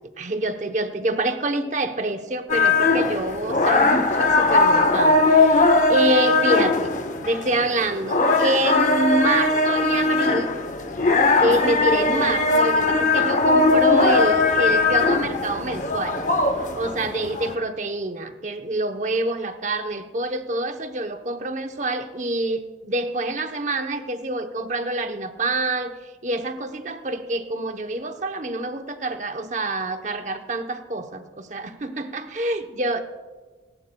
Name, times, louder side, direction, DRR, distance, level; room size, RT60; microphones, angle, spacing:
voice 1, 0.2-6.9 7.2-10.5 11.4-16.2 16.7-25.9 26.2-33.0, right 2 dB, 40° right, 7 dB, 0.8 m, -26 dB
sound 1, 2.5-17.5, left 3 dB, 40° left, 0.8 m, -20 dB
19.0 x 18.5 x 2.3 m, 1.4 s
head